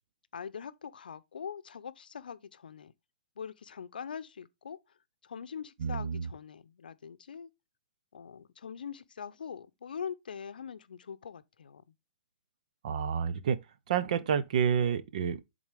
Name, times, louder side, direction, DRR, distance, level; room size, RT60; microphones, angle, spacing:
voice 1, 0.3-2.9 3.4-4.8 5.2-7.5 8.1-11.8, left 7 dB, 85° left, 0.6 m, -43 dB
voice 2, 5.8-6.3 12.8-13.6 13.9-15.4, right 7 dB, 55° right, 0.7 m, -29 dB
10.5 x 3.9 x 3.4 m
hypercardioid pair, 155°, 5 cm